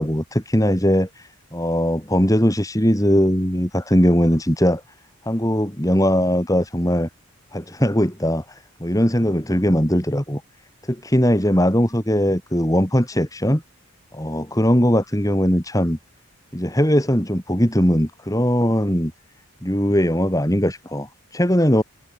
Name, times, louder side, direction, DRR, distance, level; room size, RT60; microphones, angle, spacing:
voice 1, 0.0-4.8 5.3-7.1 7.5-10.4 10.9-13.6 14.1-16.0 16.5-19.1 19.6-21.8, equal, 15° left, 4.3 m, -20 dB
head